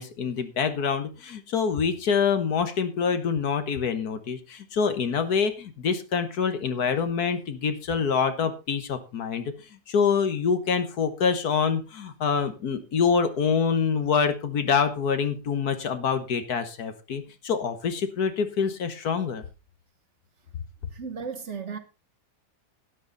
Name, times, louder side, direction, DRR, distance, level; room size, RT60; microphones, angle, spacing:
voice 1, 0.0-9.5 9.9-19.4, left 6 dB, 65° left, 1.7 m, -26 dB
voice 2, 20.9-21.8, right 6 dB, 50° right, 1.3 m, -35 dB
12.5 x 9.6 x 3.9 m
omnidirectional pair, 1.8 m